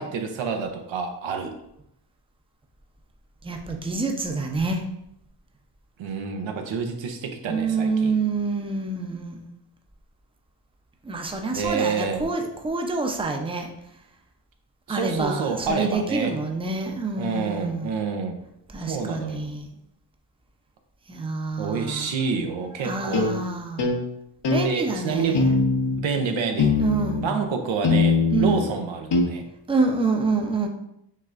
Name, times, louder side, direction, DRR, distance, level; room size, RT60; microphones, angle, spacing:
voice 1, 0.0-1.5 6.0-8.1 11.5-12.2 14.9-16.3 17.2-18.4 18.9-19.5 21.6-23.3 24.6-25.5 26.0-26.7 27.2-29.4, right 5 dB, 80° right, 4 dB, 0.7 m, -28 dB
voice 2, 3.4-4.8 7.5-9.5 11.0-13.7 14.9-17.9 18.7-19.7 21.1-22.1 22.8-23.9 24.5-25.5 26.8-27.2 28.3-28.6 29.7-30.7, right 3 dB, 10° right, 3 dB, 0.6 m, -27 dB
sound 1, 23.1-23.3 23.8-24.0 24.4-24.7 25.3-26.0 26.6-27.3 27.8-28.6 29.1-29.2, left 4 dB, 65° left, 1.0 m, -21 dB
5.6 x 3.2 x 2.5 m, 0.79 s
cardioid pair, 65°, 45 cm